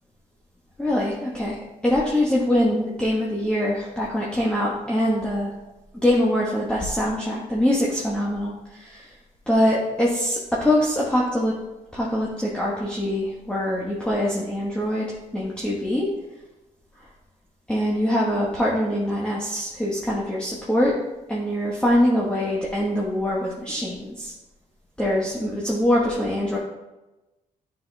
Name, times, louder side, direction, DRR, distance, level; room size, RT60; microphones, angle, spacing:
voice 1, 0.8-1.6 1.8-5.5 5.9-9.0 9.5-11.5 11.9-15.1 15.3-16.1 17.7-20.9 21.3-24.3 25.0-26.6, left 1 dB, 5° left, -5 dB, 1.2 m, -23 dB
9.4 x 5.8 x 2.3 m, 1.1 s
cardioid pair, 75°, 16 cm